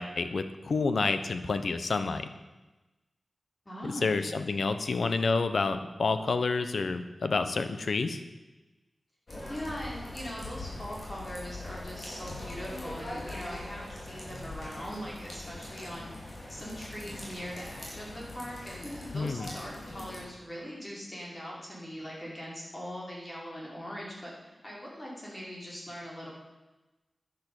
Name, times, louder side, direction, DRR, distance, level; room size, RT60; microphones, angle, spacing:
voice 1, 0.0-2.3 4.0-8.2 19.1-19.5, left 4 dB, 75° left, 10 dB, 1.2 m, -29 dB
voice 2, 3.7-4.3 9.5-16.1 16.5-26.3, equal, 25° left, -4 dB, 5.7 m, -41 dB
sound 1, 9.3-20.2, left 1 dB, 45° left, 5.2 m, -42 dB
11.0 x 10.5 x 8.9 m, 1.1 s
wide cardioid pair, 100°, 0 cm